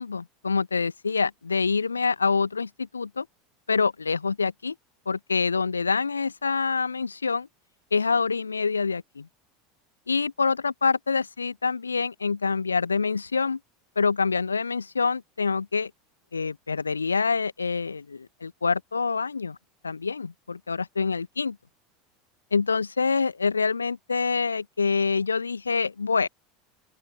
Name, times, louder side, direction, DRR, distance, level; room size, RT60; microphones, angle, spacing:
voice 1, 0.0-3.2 3.7-4.7 5.0-7.5 7.9-9.3 10.1-13.6 13.9-15.9 16.3-19.6 19.8-21.6 22.5-26.3, left 5 dB, 80° left, 1.8 m, -26 dB
open air
figure-of-eight pair, 75°, 0 cm